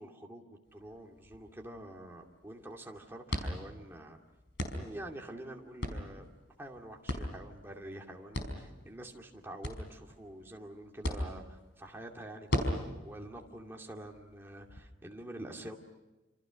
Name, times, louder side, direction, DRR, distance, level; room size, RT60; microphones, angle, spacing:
voice 1, 0.0-4.2 4.7-6.3 6.6-15.7, right 1 dB, 10° right, 0 dB, 2.5 m, -47 dB
sound 1, 0.6-14.8, equal, 55° left, 5.0 m, -40 dB
28.0 x 28.0 x 6.4 m, 1.1 s
head